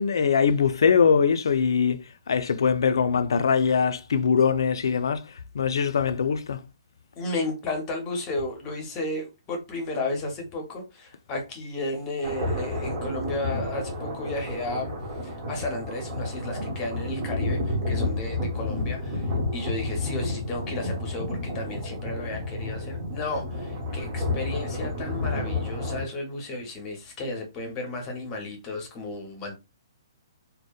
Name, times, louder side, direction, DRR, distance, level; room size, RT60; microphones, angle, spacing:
voice 1, 0.0-6.6, left 6 dB, 70° left, 0.3 m, -22 dB
voice 2, 7.2-14.9 15.2-29.6, left 2 dB, 15° left, 0.5 m, -33 dB
sound 1, 12.2-26.0, left 2 dB, 25° right, 0.7 m, -30 dB
2.7 x 2.0 x 2.2 m
hypercardioid pair, 175°, 2 cm